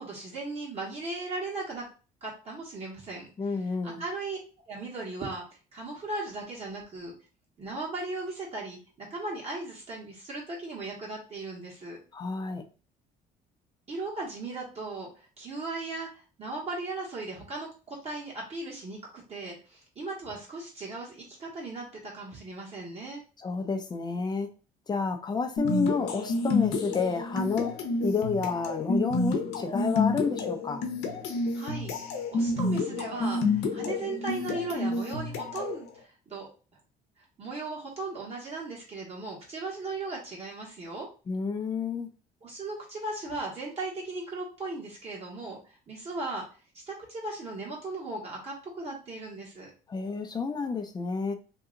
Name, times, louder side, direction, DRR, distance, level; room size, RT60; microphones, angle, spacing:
voice 1, 0.0-1.9 2.2-3.3 3.7-4.4 4.7-5.4 5.7-7.1 7.6-12.0 13.9-23.2 31.5-31.9 32.3-36.5 37.2-41.1 42.4-46.4 46.7-49.7, right 2 dB, 40° right, -4 dB, 1.3 m, -37 dB
voice 2, 3.4-4.0 12.1-12.6 23.4-24.5 24.9-27.7 28.0-30.8 41.3-42.1 49.9-51.3, left 4 dB, 25° left, 7 dB, 0.6 m, -30 dB
sound 1, 25.6-35.8, left 3 dB, 85° left, 0.8 m, -29 dB
2.8 x 2.4 x 3.7 m, 0.35 s
cardioid pair, 110°, 17 cm